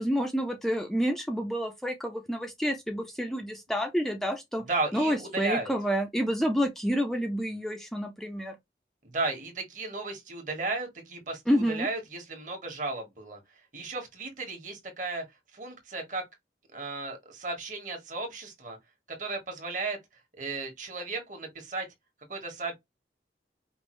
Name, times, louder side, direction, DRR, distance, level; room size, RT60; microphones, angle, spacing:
voice 1, 0.0-4.6 4.9-8.5 11.5-11.9, equal, ahead, 0.5 m, -29 dB
voice 2, 4.6-5.7 9.0-15.2 15.5-16.2 16.7-18.8 19.1-20.0 20.4-21.9 22.3-22.7, right 3 dB, 45° right, 1.5 m, -34 dB
5.2 x 2.5 x 3.1 m
head